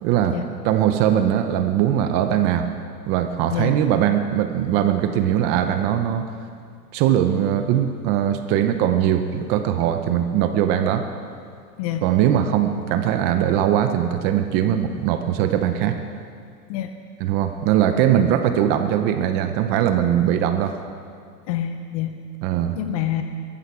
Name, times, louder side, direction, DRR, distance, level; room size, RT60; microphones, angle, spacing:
voice 1, 0.0-0.4 0.6-2.7 3.1-6.3 6.9-11.1 12.0-16.0 17.2-20.8 22.4-22.8, right 10 dB, 20° right, 9 dB, 0.6 m, -20 dB
voice 2, 21.5-22.2 22.7-23.2, left 11 dB, 25° left, 7 dB, 0.5 m, -27 dB
19.5 x 14.5 x 4.8 m, 2.2 s
hypercardioid pair, 135°, 49 cm